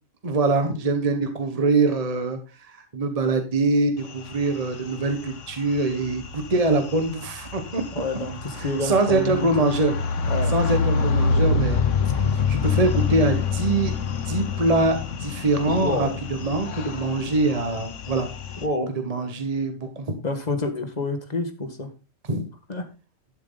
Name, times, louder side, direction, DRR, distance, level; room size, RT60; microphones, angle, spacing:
voice 1, 0.2-7.8 8.6-10.0 10.5-11.8 12.1-18.3 19.0-20.1 22.3-22.5, right 3 dB, 30° right, 6 dB, 1.4 m, -24 dB
sound 1, 4.1-18.7, left 5 dB, 65° left, 1.3 m, -27 dB
voice 2, 7.9-9.7 10.2-10.5 15.8-16.2 18.6-19.0 20.2-21.9 22.7-22.9, left 2 dB, 30° left, 7 dB, 1.7 m, -28 dB
12.5 x 7.5 x 4.0 m, 0.32 s
omnidirectional pair, 1.4 m